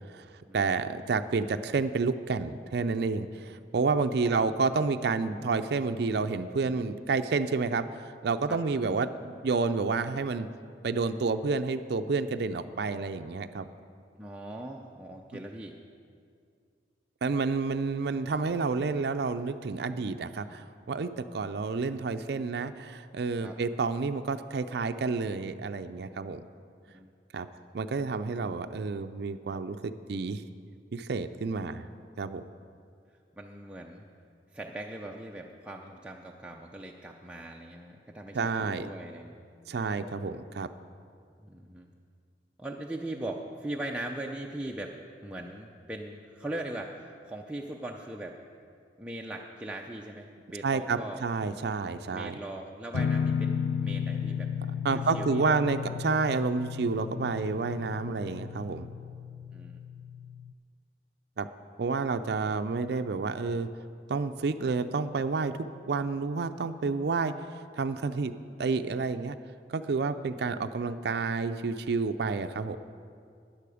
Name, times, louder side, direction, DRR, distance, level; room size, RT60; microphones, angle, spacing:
voice 1, 0.1-10.5 10.8-13.7 17.2-26.4 27.3-27.5 27.7-30.4 30.9-31.9 32.2-32.4 38.3-38.9 39.7-40.7 50.6-52.3 54.8-58.9 61.4-61.5 61.8-63.7 64.1-67.3 67.7-68.3 68.6-69.4 69.7-72.8, right 4 dB, 65° right, 9 dB, 0.4 m, -30 dB
voice 2, 3.9-4.4 8.5-8.6 14.2-15.8 23.4-23.6 26.9-27.1 33.3-34.0 34.5-39.3 41.4-41.9 42.6-45.0 45.2-48.4 49.0-51.2 52.1-54.5 54.9-55.6 59.5-59.8, right 1 dB, 5° right, -1 dB, 0.5 m, -40 dB
sound 1, 52.9-60.5, left 7 dB, 65° left, 0.3 m, -34 dB
13.5 x 10.0 x 4.9 m, 2.3 s
head